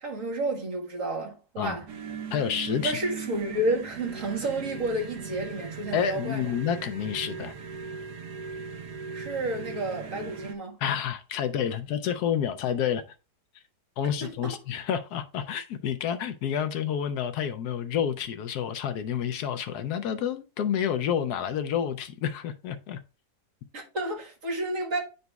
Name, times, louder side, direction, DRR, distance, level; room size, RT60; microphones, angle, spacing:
voice 1, 0.0-1.8 2.8-6.5 9.1-10.8 14.2-14.5 23.7-25.0, right 1 dB, 50° right, 1.8 m, -31 dB
sound 1, 1.9-10.5, right 5 dB, 75° right, 1.3 m, -39 dB
voice 2, 2.3-3.0 5.9-7.5 10.8-13.0 14.0-23.0, left 8 dB, 75° left, 1.1 m, -29 dB
10.5 x 4.0 x 2.2 m
omnidirectional pair, 1.8 m